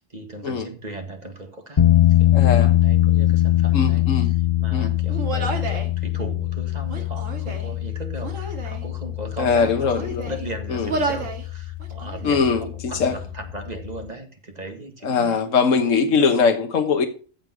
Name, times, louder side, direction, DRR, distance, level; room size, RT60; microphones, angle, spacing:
voice 1, 0.0-4.3 4.6-16.5, right 1 dB, 30° right, 1.9 m, -37 dB
sound 1, 1.8-14.1, left 14 dB, 40° left, 0.5 m, -22 dB
voice 2, 2.3-2.7 3.7-4.3 4.7-4.9 9.4-10.3 10.7-10.9 12.2-13.1 15.0-17.1, left 5 dB, 75° left, 1.5 m, -21 dB
Human voice, 5.1-5.9 6.8-7.7 8.2-8.9 9.5-10.5 10.8-11.4 11.8-12.5, right 3 dB, 75° right, 2.2 m, -31 dB
14.5 x 5.2 x 6.0 m
omnidirectional pair, 1.3 m